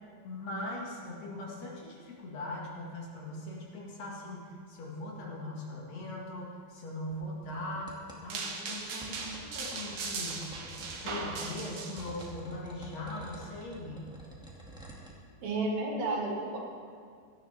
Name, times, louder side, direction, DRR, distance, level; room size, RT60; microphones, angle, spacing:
voice 1, 0.2-7.9 8.2-10.5 11.0-14.1, left 1 dB, 55° left, -3 dB, 3.0 m, -40 dB
sound 1, 7.1-8.2 9.0-11.5 12.0-15.1, right 1 dB, ahead, 1.0 m, -49 dB
sound 2, 8.3-12.3, right 4 dB, 60° right, 1.5 m, -38 dB
voice 2, 15.4-16.6, right 2 dB, 80° right, -2 dB, 4.0 m, -31 dB
17.5 x 13.0 x 3.5 m, 2.2 s
omnidirectional pair, 4.0 m